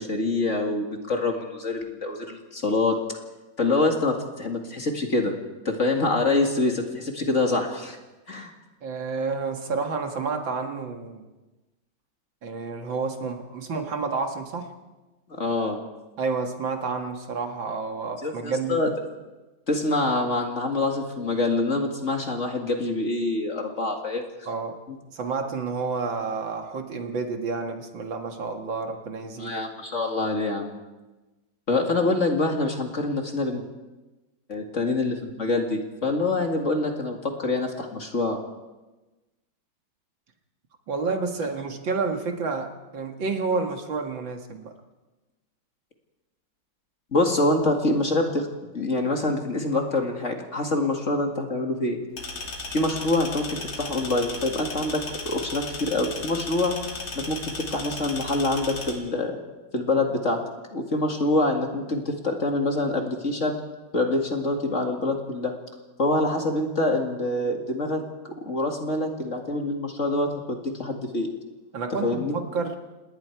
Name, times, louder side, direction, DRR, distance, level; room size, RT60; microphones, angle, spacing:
voice 1, 0.0-3.0 3.6-5.3 5.7-8.0 8.3-8.5 15.3-15.8 18.2-18.9 19.7-24.2 24.9-25.0 29.4-30.7 31.7-33.6 34.5-38.4 47.1-52.0 52.7-56.8 57.2-59.4 59.7-60.4 60.7-63.6 63.9-65.5 66.0-68.0 68.5-71.3 72.0-72.4, left 2 dB, 35° left, 2 dB, 2.3 m, -25 dB
voice 2, 8.8-11.2 12.4-14.7 16.2-18.8 24.5-24.8 25.1-29.6 40.9-44.7 71.7-72.8, right 4 dB, 70° right, 4 dB, 2.5 m, -30 dB
sound 1, 52.2-58.9, left 3 dB, 65° left, 3.6 m, -35 dB
28.0 x 19.5 x 4.7 m, 1.1 s
omnidirectional pair, 2.2 m